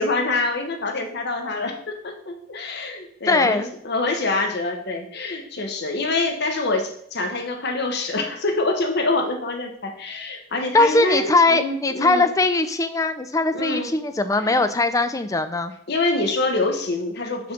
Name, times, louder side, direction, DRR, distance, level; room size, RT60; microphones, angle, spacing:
voice 1, 0.0-12.3 13.5-13.9 14.4-14.6 15.9-17.5, left 2 dB, 55° left, 4 dB, 1.1 m, -25 dB
voice 2, 3.3-3.7 10.7-15.7, left 2 dB, 15° left, 10 dB, 0.4 m, -20 dB
6.0 x 3.8 x 5.9 m, 0.70 s
head